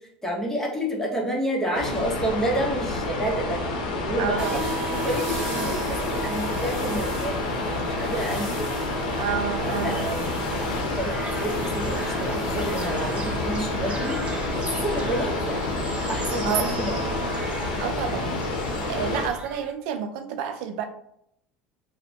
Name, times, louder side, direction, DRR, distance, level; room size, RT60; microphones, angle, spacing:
voice 1, 0.2-3.6 4.0-4.6 4.9-7.4 7.7-8.7 9.8-14.2 14.5-15.6 16.1-17.0, right 1 dB, 10° left, -2 dB, 0.9 m, -29 dB
sound 1, 1.7-19.3, left 2 dB, 85° left, 0.6 m, -29 dB
voice 2, 4.2-4.6 9.2-10.1 16.4-16.7 17.8-18.4 18.9-20.8, right 8 dB, 75° right, 7 dB, 0.3 m, -29 dB
sound 2, 4.4-17.4, right 3 dB, 10° right, 1.5 m, -36 dB
sound 3, 9.7-19.7, right 1 dB, 25° right, 0.6 m, -39 dB
2.8 x 2.1 x 2.7 m, 0.71 s
supercardioid pair, 90°, 4 cm